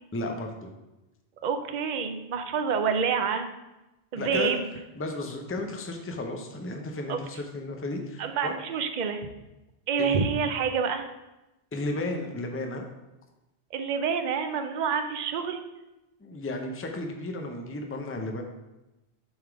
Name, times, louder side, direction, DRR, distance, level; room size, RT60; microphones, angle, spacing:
voice 1, 0.1-0.7 4.1-4.5 5.0-8.5 10.0-10.2 11.7-12.9 16.2-18.4, left 2 dB, 15° left, 3 dB, 0.5 m, -33 dB
voice 2, 1.4-3.5 4.1-4.7 7.1-7.2 8.2-9.3 9.9-11.1 13.7-15.6, right 6 dB, 50° right, 7 dB, 0.6 m, -27 dB
7.2 x 3.5 x 4.7 m, 0.99 s
omnidirectional pair, 1.1 m